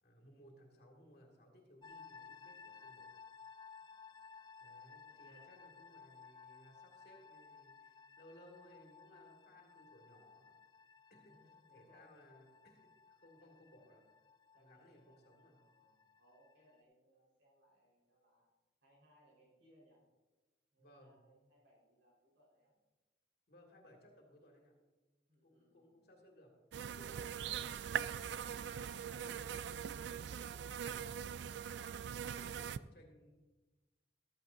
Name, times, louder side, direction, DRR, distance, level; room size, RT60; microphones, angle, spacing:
voice 1, 0.0-3.1 4.6-10.6 11.1-14.0 14.5-15.6 20.8-21.2 23.5-24.7 25.4-26.5 26.9-31.9 32.3-33.3, equal, 55° left, 0 dB, 2.2 m, -63 dB
sound 1, 1.8-16.8, left 5 dB, 25° left, 0.4 m, -58 dB
voice 2, 3.8-4.3 5.0-5.6 11.2-12.2 13.4-13.5 14.5-18.5 18.8-20.0 20.7-22.7 25.3-26.1, equal, 85° right, -4 dB, 4.6 m, -70 dB
sound 2, 26.7-32.8, right 8 dB, 70° right, 0.3 m, -42 dB
14.0 x 13.5 x 2.7 m, 1.2 s
head